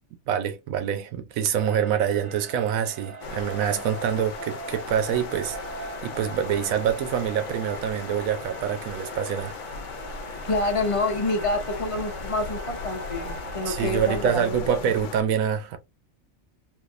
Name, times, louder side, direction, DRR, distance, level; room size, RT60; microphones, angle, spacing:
voice 1, 0.3-9.6 13.7-15.8, right 8 dB, 90° right, 1.1 m, -26 dB
sound 1, 1.5-14.4, right 4 dB, 60° right, 1.6 m, -41 dB
sound 2, 3.2-15.2, left 5 dB, 70° left, 1.0 m, -37 dB
voice 2, 10.4-14.7, left 2 dB, 40° left, 0.5 m, -27 dB
3.5 x 2.7 x 2.5 m
omnidirectional pair, 1.4 m